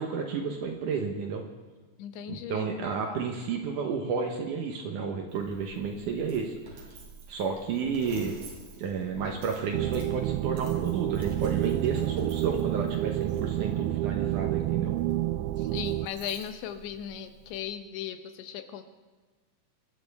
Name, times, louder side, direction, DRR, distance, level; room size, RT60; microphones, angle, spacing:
voice 1, 0.0-1.4 2.3-6.5 7.3-8.3 8.8-15.0, right 5 dB, 75° right, 2 dB, 1.9 m, -31 dB
voice 2, 2.0-3.2 15.6-18.8, left 9 dB, 85° left, 8 dB, 3.2 m, -38 dB
Coin (dropping), 5.3-17.6, right 3 dB, 40° right, 4.2 m, -49 dB
sound 1, 9.7-16.1, right 15 dB, 90° right, 2.8 m, -29 dB
26.0 x 12.0 x 3.5 m, 1.3 s
omnidirectional pair, 5.0 m